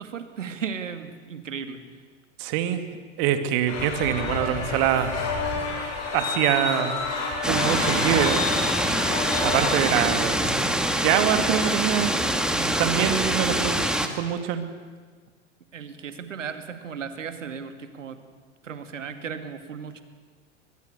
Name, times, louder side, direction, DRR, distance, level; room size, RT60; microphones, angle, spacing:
voice 1, 0.0-1.8 8.8-9.2 12.5-12.9 15.7-18.2 18.6-20.0, right 6 dB, 80° right, 9 dB, 2.3 m, -36 dB
voice 2, 2.4-2.8 3.2-5.2 6.1-6.9 7.4-8.4 9.4-12.1 12.8-13.8 14.1-14.6, right 10 dB, 50° right, 9 dB, 2.6 m, -24 dB
sound 1, 3.7-10.0, left 4 dB, 45° left, 7.9 m, -29 dB
sound 2, 7.4-14.1, right 1 dB, ahead, 2.1 m, -25 dB
23.5 x 20.5 x 8.3 m, 1.5 s
hypercardioid pair, 100°, 37 cm